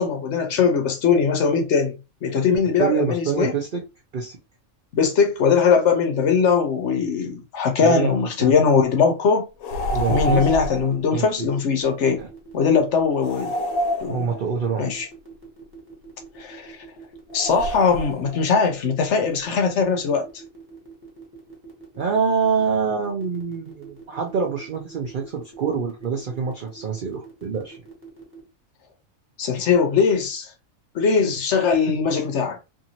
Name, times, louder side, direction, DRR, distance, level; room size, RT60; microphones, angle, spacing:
voice 1, 0.0-1.9 2.2-3.5 4.9-9.5 10.1-12.2 12.5-13.5 14.0-14.3 14.8-15.1 16.4-16.8 17.3-20.3 29.4-30.5 30.9-32.6, left 5 dB, 60° left, 0.9 m, -20 dB
voice 2, 2.8-3.8 4.1-4.4 7.8-8.5 9.9-10.5 11.1-11.5 12.2-12.3 14.1-14.9 22.0-27.8 31.9-32.0, right 6 dB, 70° right, 0.5 m, -25 dB
sound 1, 9.6-10.9 13.2-14.6 17.3-18.5, equal, 90° left, 1.1 m, -27 dB
sound 2, 10.0-28.4, right 4 dB, 10° right, 1.0 m, -44 dB
2.7 x 2.6 x 2.8 m
omnidirectional pair, 1.5 m